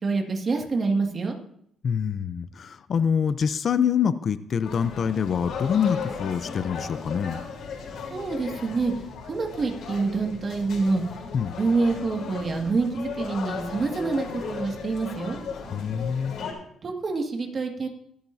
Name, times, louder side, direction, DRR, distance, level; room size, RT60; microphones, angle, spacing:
voice 1, 0.0-1.4 8.1-8.9 9.3-11.0 11.6-15.4 16.8-17.9, right 3 dB, 40° right, 2 dB, 2.0 m, -26 dB
voice 2, 1.8-7.4 11.3-11.6 15.7-16.4, left 7 dB, 55° left, 13 dB, 0.6 m, -25 dB
sound 1, 4.6-16.5, left 5 dB, 75° left, 3.9 m, -36 dB
23.0 x 8.8 x 2.7 m, 0.71 s
cardioid pair, 90°, 0 cm